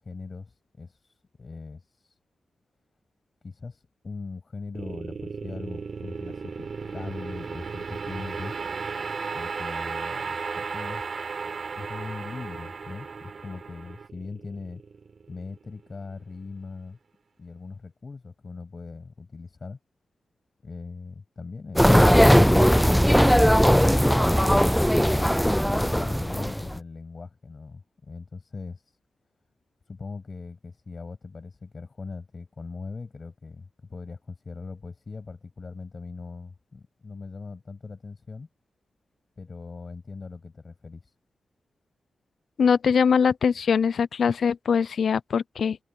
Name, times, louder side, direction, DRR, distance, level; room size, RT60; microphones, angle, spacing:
voice 1, 0.0-2.2 3.4-6.7 6.9-8.5 9.3-11.4 11.8-14.8 15.3-17.0 17.4-19.8 20.6-24.1 24.9-29.0 29.9-38.5 39.4-41.1, left 4 dB, 40° left, 7.8 m, -40 dB
sound 1, 4.7-15.9, right 5 dB, 55° right, 4.3 m, -35 dB
sound 2, 21.8-26.8, equal, ahead, 0.3 m, -18 dB
voice 2, 42.6-45.8, left 6 dB, 75° left, 0.6 m, -22 dB
wide cardioid pair, 100°, 0 cm